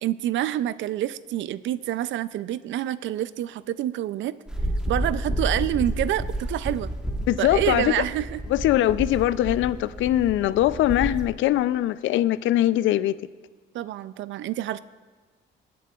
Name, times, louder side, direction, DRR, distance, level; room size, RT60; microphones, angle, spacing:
voice 1, 0.0-4.4 4.9-6.9 7.4-8.4 13.7-14.8, right 13 dB, 75° right, 16 dB, 0.4 m, -27 dB
sound 1, 4.5-11.2, equal, 5° right, 1.1 m, -30 dB
voice 2, 7.3-7.9 8.5-13.2, left 13 dB, 80° left, 17 dB, 0.4 m, -22 dB
23.5 x 8.4 x 2.4 m, 1.4 s
cardioid pair, 90°, 20 cm